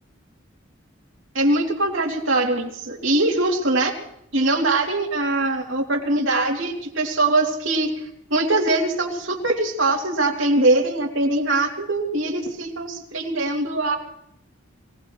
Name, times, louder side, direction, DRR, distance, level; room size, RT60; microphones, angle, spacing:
voice 1, 1.3-3.9 4.3-7.9 8.3-14.0, right 2 dB, 75° right, 0 dB, 2.8 m, -22 dB
25.0 x 18.0 x 3.1 m, 0.75 s
head